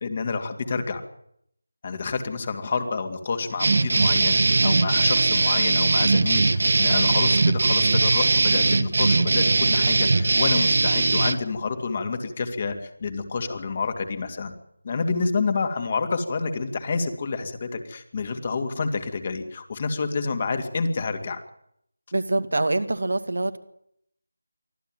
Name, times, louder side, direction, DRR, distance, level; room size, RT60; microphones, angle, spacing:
voice 1, 0.0-1.0 1.8-14.5 14.8-21.4, left 4 dB, 35° left, 6 dB, 2.7 m, -28 dB
sound 1, 3.6-11.3, right 3 dB, 55° right, 1.4 m, -20 dB
voice 2, 22.1-23.6, right 2 dB, 70° right, 9 dB, 2.1 m, -25 dB
24.5 x 14.5 x 9.3 m, 0.71 s
figure-of-eight pair, 165°, 0 cm